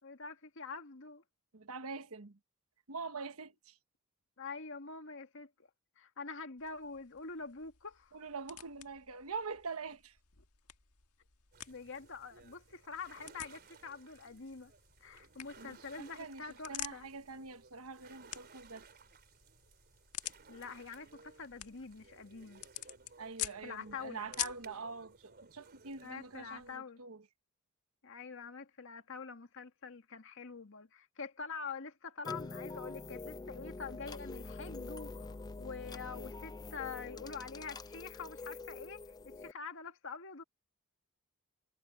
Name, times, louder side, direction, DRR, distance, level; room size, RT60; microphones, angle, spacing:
voice 1, 0.0-1.2 4.4-5.5 6.0-8.2 11.7-14.7 15.0-17.1 20.5-22.6 23.6-24.3 26.0-27.0 28.0-40.4, left 5 dB, 60° left, 1.8 m, -46 dB
voice 2, 1.5-2.4 2.9-3.8 8.1-10.2 15.6-18.9 23.2-27.2, right 4 dB, 70° right, 1.3 m, -44 dB
sound 1, 6.6-24.7, left 13 dB, 85° left, 1.6 m, -48 dB
sound 2, 11.5-26.8, right 4 dB, 45° right, 3.7 m, -60 dB
sound 3, 32.2-39.5, left 3 dB, 20° left, 0.4 m, -45 dB
head